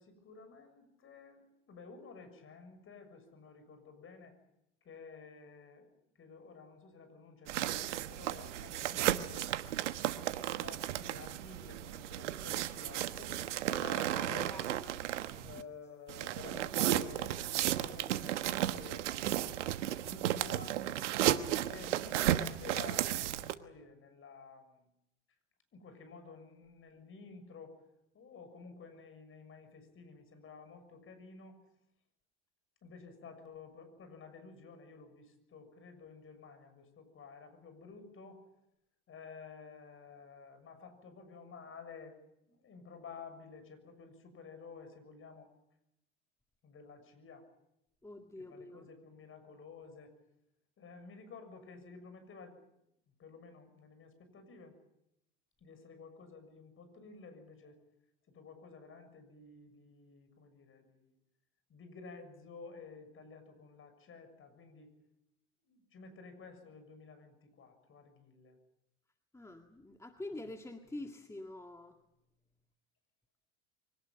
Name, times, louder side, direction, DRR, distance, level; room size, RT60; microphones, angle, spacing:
voice 1, 0.0-4.3 4.8-5.9 6.2-9.5 10.6-14.5 15.4-17.4 17.6-19.5 20.0-21.1 21.7-24.9 25.7-27.8 28.1-31.6 32.8-38.4 39.1-42.2 42.5-45.5 46.6-47.5 48.4-50.1 50.8-52.6 53.2-54.7 55.6-57.8 58.3-61.1 61.7-65.0 65.7-68.6, left 5 dB, 35° left, 9 dB, 6.9 m, -52 dB
sound 1, 7.5-15.6 16.1-23.5, right 12 dB, 80° right, 1.2 m, -34 dB
voice 2, 14.1-15.6 48.0-48.9 69.3-72.0, left 2 dB, 10° left, 4 dB, 1.9 m, -47 dB
24.5 x 18.5 x 9.1 m, 0.83 s
hypercardioid pair, 85°, 35 cm